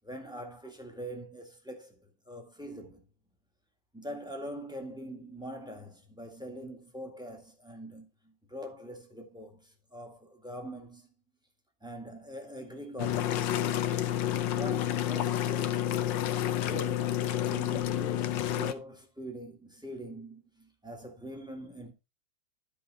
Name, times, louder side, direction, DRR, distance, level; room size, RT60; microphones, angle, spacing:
voice 1, 0.0-3.0 3.9-11.1 11.8-13.6 14.5-15.9 16.6-17.2 17.5-21.9, equal, ahead, 1.6 m, -43 dB
sound 1, 13.0-18.7, left 12 dB, 80° left, 1.4 m, -29 dB
12.0 x 5.1 x 4.0 m
omnidirectional pair, 2.0 m